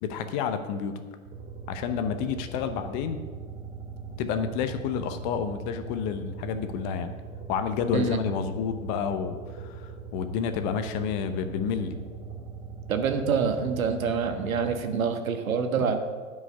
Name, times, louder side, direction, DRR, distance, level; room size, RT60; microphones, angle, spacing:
voice 1, 0.0-0.9 1.7-3.2 4.2-7.1 7.5-12.0, left 7 dB, 35° left, 9 dB, 0.8 m, -30 dB
sound 1, 1.2-14.8, right 5 dB, 35° right, 3.3 m, -40 dB
voice 2, 12.9-16.0, right 6 dB, 75° right, 6 dB, 1.4 m, -26 dB
9.6 x 5.5 x 8.2 m, 1.5 s
hypercardioid pair, 125°, 41 cm